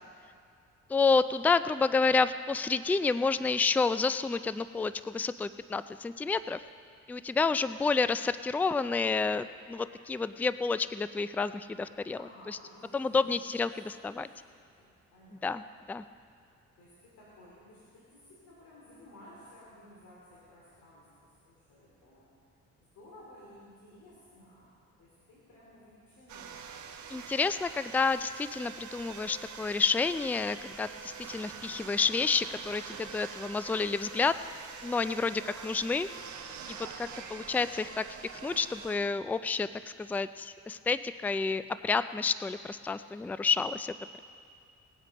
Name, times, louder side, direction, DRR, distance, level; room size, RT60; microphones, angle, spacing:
voice 1, 0.9-6.6 7.1-12.2 12.5-12.6 12.9-14.3 15.4-15.6 15.9-16.0 27.1-34.4 34.8-36.1 36.7-38.0 38.3-39.7 40.0-44.2, left 4 dB, 5° left, 13 dB, 0.3 m, -29 dB
voice 2, 12.1-13.4 13.8-15.8 16.3-22.3 22.8-24.7 25.0-26.7 37.5-37.8, left 1 dB, 80° left, -6 dB, 3.0 m, -55 dB
sound 1, 26.3-39.0, right 6 dB, 70° right, 1.2 m, -45 dB
19.5 x 8.3 x 5.3 m, 2.4 s
cardioid pair, 90°, 30 cm